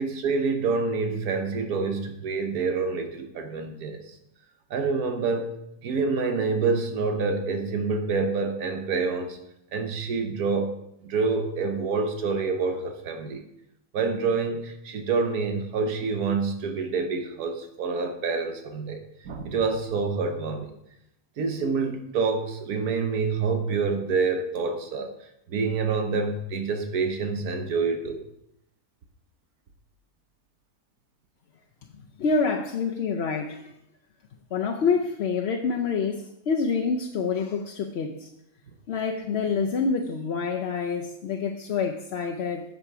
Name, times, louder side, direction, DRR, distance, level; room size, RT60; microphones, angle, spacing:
voice 1, 0.0-4.0 4.7-5.5 5.8-9.4 9.7-10.7 11.0-13.4 13.9-20.7 21.4-25.1 25.5-28.2, right 4 dB, 80° right, 6 dB, 1.5 m, -27 dB
voice 2, 32.2-33.6 34.5-38.3 38.9-42.6, left 5 dB, 55° left, 2 dB, 0.8 m, -27 dB
8.4 x 6.8 x 4.8 m, 0.79 s
omnidirectional pair, 1.6 m